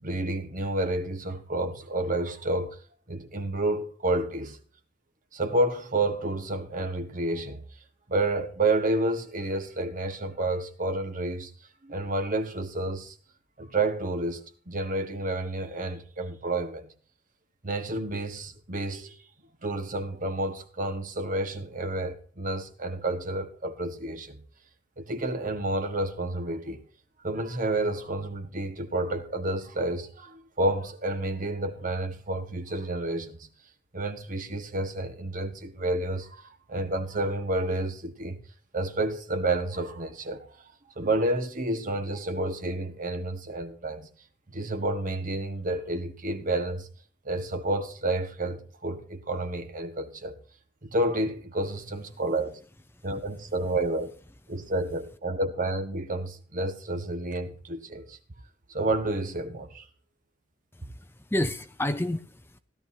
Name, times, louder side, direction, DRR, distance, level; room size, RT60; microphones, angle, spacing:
voice 1, 0.0-2.8 3.1-4.6 5.3-7.6 8.1-11.5 11.8-13.1 13.6-14.4 14.7-16.9 17.6-19.2 19.6-24.4 25.0-26.8 27.2-33.5 33.9-38.4 38.7-40.5 41.0-44.1 44.5-46.9 47.2-50.3 50.8-52.6 53.0-54.1 54.5-58.2 58.7-59.9, right 2 dB, 45° right, 1.5 m, -30 dB
voice 2, 60.7-62.6, left 1 dB, 10° left, 0.6 m, -31 dB
16.5 x 12.0 x 2.8 m
head